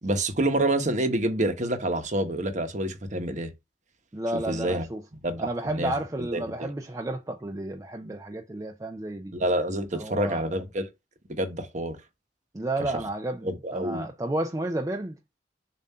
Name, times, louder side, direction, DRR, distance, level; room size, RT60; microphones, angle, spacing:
voice 1, 0.0-3.5 4.3-4.8 5.2-5.9 6.3-6.7 9.3-10.9 11.3-12.0 13.4-14.1, right 1 dB, 45° right, 1.0 m, -27 dB
voice 2, 4.1-5.0 5.4-9.3 9.9-10.4 12.5-15.2, right 1 dB, 20° right, 0.5 m, -32 dB
7.1 x 2.7 x 5.5 m
head